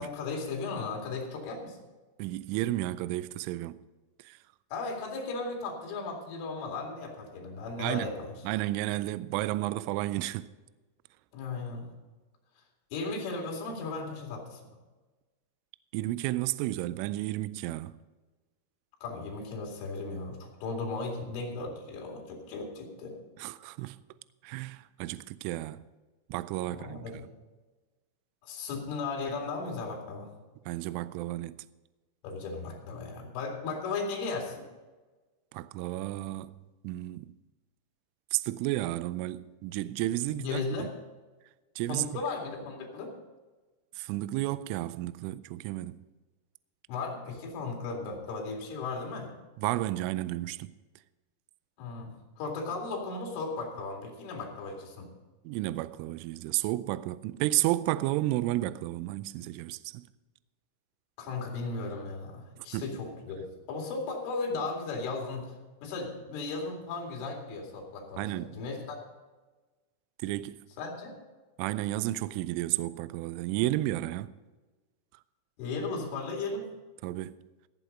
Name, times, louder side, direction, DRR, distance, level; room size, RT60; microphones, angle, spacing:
voice 1, 0.0-1.8 4.7-8.3 11.3-11.9 12.9-14.6 19.0-23.2 26.7-27.2 28.4-30.3 32.2-34.7 40.3-40.9 41.9-43.1 46.9-49.3 51.8-55.1 61.2-65.5 65.8-69.0 70.8-71.1 75.6-76.7, left 3 dB, 70° left, 4.8 m, -36 dB
voice 2, 2.2-3.8 4.2-4.4 7.8-8.1 8.4-10.5 15.9-18.0 23.4-24.0 24.4-25.9 26.3-27.2 30.7-31.6 35.5-36.6 36.8-37.3 38.3-40.9 41.8-42.1 44.0-46.0 49.6-50.8 55.4-60.1 62.6-63.0 68.2-68.6 70.2-70.6 71.6-74.3 77.0-77.4, right 16 dB, 85° right, 2.9 m, -32 dB
16.5 x 8.3 x 5.3 m
omnidirectional pair, 6.0 m